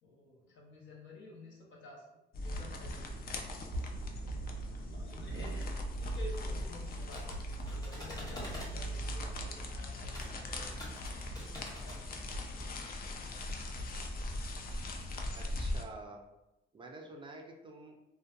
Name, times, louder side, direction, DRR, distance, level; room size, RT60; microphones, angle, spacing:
voice 1, 0.0-2.0 2.4-3.4 4.2-7.3 7.7-10.8 11.4-12.8, left 1 dB, 65° left, -4 dB, 0.9 m, -52 dB
sound 1, 2.3-15.8, equal, 50° left, 0.4 m, -39 dB
sound 2, 2.5-2.9 3.7-4.1 5.0-5.4 6.1-6.5 7.3-7.7 8.5-8.9 9.7-10.1 11.0-11.4 12.3-12.7 13.5-13.9, equal, 85° right, 0.5 m, -42 dB
voice 2, 5.3-5.6 15.3-16.2 16.7-18.0, right 2 dB, 25° right, 1 dB, 0.4 m, -49 dB
sound 3, 6.9-8.7 10.1-10.3 10.7-12.0, equal, 20° left, 0.9 m, -46 dB
2.6 x 2.2 x 2.5 m, 0.95 s
cardioid pair, 90°, 20 cm